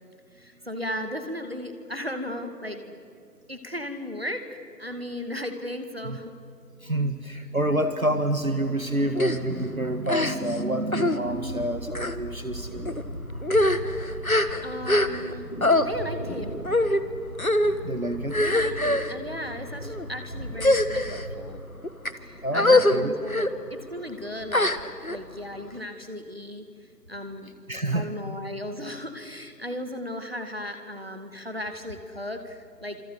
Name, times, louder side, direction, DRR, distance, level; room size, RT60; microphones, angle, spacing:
voice 1, 0.3-3.0 3.5-6.3 6.9-7.0 13.3-13.5 14.2-15.5 15.8-16.6 18.3-21.6 22.2-24.7 25.1-26.6 27.1-27.5 27.9-33.0, left 1 dB, 35° right, 7 dB, 2.2 m, -36 dB
voice 2, 6.8-12.9 17.8-18.4 22.4-23.1 27.7-28.1, right 1 dB, 55° right, 8 dB, 1.8 m, -28 dB
sound 1, 9.1-18.7, equal, 20° left, 5.4 m, -45 dB
sound 2, 9.2-9.4 10.1-10.6 10.9-11.2 11.9-12.2 12.9-13.0 13.4-15.3 15.6-15.9 16.7-17.0 17.4-17.8 18.3-19.1 19.8-20.1 20.5-21.2 21.8-22.1 22.5-23.0 23.3-23.5 24.5-25.2, left 1 dB, 60° left, 1.6 m, -23 dB
sound 3, 11.2-21.5, equal, 40° left, 7.1 m, -39 dB
27.5 x 26.5 x 7.9 m, 2.4 s
figure-of-eight pair, 175°, 49 cm